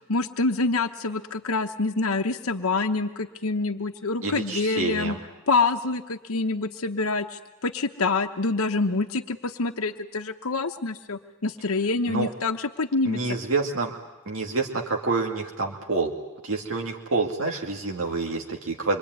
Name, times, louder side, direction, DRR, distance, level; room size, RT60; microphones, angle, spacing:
voice 1, 0.1-5.2 5.5-13.2, left 3 dB, 90° left, 3 dB, 1.0 m, -26 dB
voice 2, 4.2-5.2 12.1-12.3 13.0-13.9 14.3-16.1 16.4-19.0, right 3 dB, 70° right, 1 dB, 2.3 m, -27 dB
26.0 x 23.5 x 9.5 m, 1.0 s
head